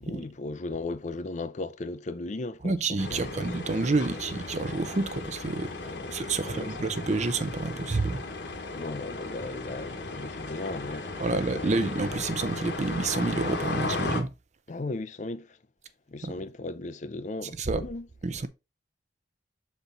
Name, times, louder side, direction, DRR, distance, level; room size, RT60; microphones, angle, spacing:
voice 1, 0.0-3.6 5.8-6.8 8.7-12.0 14.7-15.6 16.1-18.1, left 2 dB, 40° left, 0.5 m, -37 dB
voice 2, 2.6-5.7 6.1-8.2 11.2-14.3 16.2-16.3 17.6-17.8 18.2-18.5, right 3 dB, 40° right, 0.6 m, -28 dB
sound 1, 3.0-14.2, left 3 dB, 65° left, 1.3 m, -36 dB
6.8 x 4.4 x 3.8 m
head